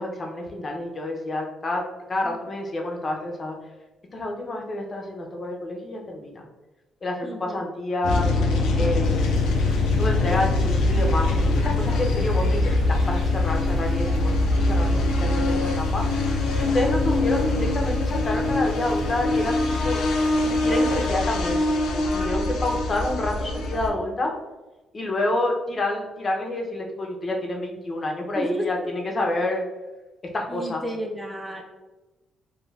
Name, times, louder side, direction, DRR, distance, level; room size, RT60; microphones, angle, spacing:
voice 1, 0.0-1.8 2.1-3.5 4.1-6.5 7.0-8.4 8.8-9.3 10.0-16.0 16.6-20.0 20.4-21.6 22.1-24.3 24.9-29.6 30.3-30.8, left 1 dB, 35° left, 1 dB, 0.5 m, -28 dB
voice 2, 7.2-7.6 28.3-28.9 30.5-31.6, equal, 10° right, 1 dB, 0.4 m, -32 dB
sound 1, 8.0-23.9, left 2 dB, 90° left, 0.4 m, -23 dB
sound 2, 9.0-21.1, right 2 dB, 40° right, 0.9 m, -40 dB
2.3 x 2.2 x 3.2 m, 1.1 s
cardioid pair, 90°, 0 cm